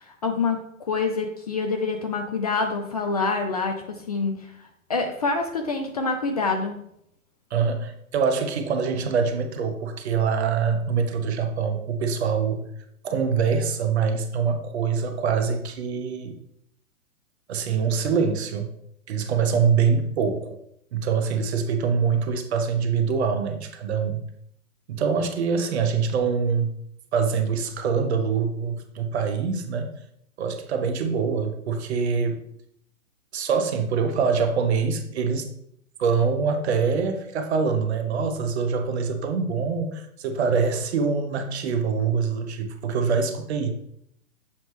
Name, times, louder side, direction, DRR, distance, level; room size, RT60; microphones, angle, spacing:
voice 1, 0.0-4.5 4.9-6.8, left 4 dB, 30° left, 5 dB, 0.4 m, -26 dB
voice 2, 7.5-12.7 13.0-16.4 17.5-18.7 19.1-20.6 20.9-24.2 24.9-26.7 27.1-30.0 30.4-32.4 33.3-35.5 36.0-43.7, right 5 dB, 50° right, 7 dB, 1.0 m, -24 dB
7.2 x 4.4 x 3.2 m, 0.72 s
hypercardioid pair, 130°, 42 cm